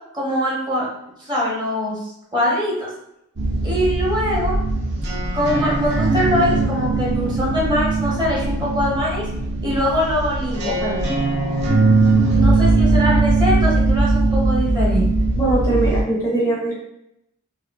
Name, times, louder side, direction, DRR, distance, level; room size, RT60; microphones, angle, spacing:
voice 1, 0.1-0.9 1.2-2.0 2.3-2.9 3.6-4.6 5.3-9.2 9.6-10.7 12.3-15.1, equal, 20° right, -5 dB, 0.7 m, -22 dB
sound 1, 3.4-16.0, right 2 dB, 60° right, 0.6 m, -20 dB
voice 2, 15.4-16.7, right 2 dB, 15° left, -6 dB, 0.5 m, -21 dB
2.5 x 2.3 x 2.2 m, 0.81 s
head